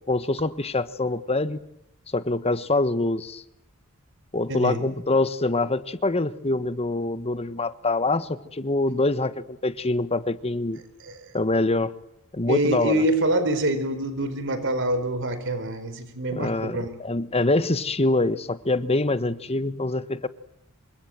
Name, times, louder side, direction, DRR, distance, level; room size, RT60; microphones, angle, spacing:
voice 1, 0.0-1.6 2.1-3.4 4.3-10.8 11.3-11.9 12.3-13.0 16.3-20.3, left 2 dB, 30° left, 1.4 m, -25 dB
voice 2, 4.5-4.8 11.0-11.3 12.5-16.9, right 1 dB, 60° right, 4.4 m, -25 dB
28.0 x 25.5 x 7.8 m
head